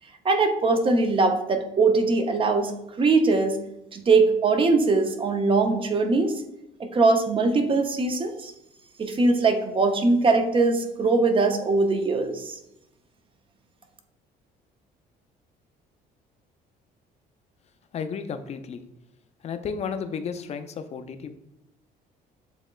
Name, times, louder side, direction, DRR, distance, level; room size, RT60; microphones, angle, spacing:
voice 1, 0.2-2.7 3.0-3.6 3.9-6.4 6.8-8.5 9.0-12.5, right 3 dB, 30° right, 6 dB, 0.5 m, -21 dB
voice 2, 17.9-18.8 19.4-21.3, left 6 dB, 40° left, 9 dB, 0.4 m, -33 dB
7.3 x 2.9 x 2.3 m, 0.85 s
cardioid pair, 110°, 17 cm